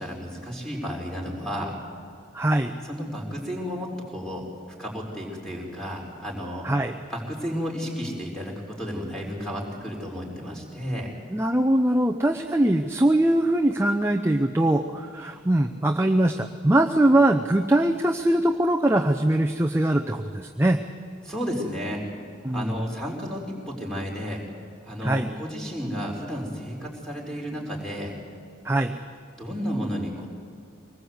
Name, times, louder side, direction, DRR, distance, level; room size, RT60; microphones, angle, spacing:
voice 1, 0.0-1.8 2.8-4.4 4.8-6.7 7.1-11.1 21.2-22.0 22.5-24.4 24.8-28.2 29.4-30.3, equal, 5° left, -1 dB, 4.4 m, -32 dB
voice 2, 2.3-2.7 6.6-6.9 11.3-20.8 22.4-22.8 25.0-25.3 28.6-29.0, right 1 dB, 15° right, 3 dB, 0.7 m, -22 dB
24.5 x 20.0 x 8.0 m, 2.3 s
head